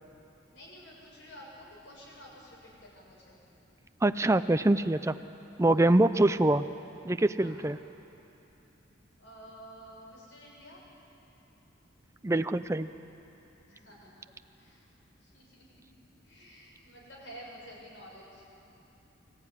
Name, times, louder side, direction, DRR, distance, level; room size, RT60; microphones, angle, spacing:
voice 1, 0.5-3.4 5.7-5.9 7.4-7.6 9.2-10.8 13.7-14.2 14.6-14.8 15.2-15.8 16.2-18.5, equal, 75° left, -4 dB, 7.1 m, -50 dB
voice 2, 4.0-5.1 5.6-6.6 7.0-7.8 12.2-12.9, right 2 dB, 15° right, 11 dB, 0.4 m, -24 dB
24.0 x 14.5 x 9.6 m, 2.9 s
head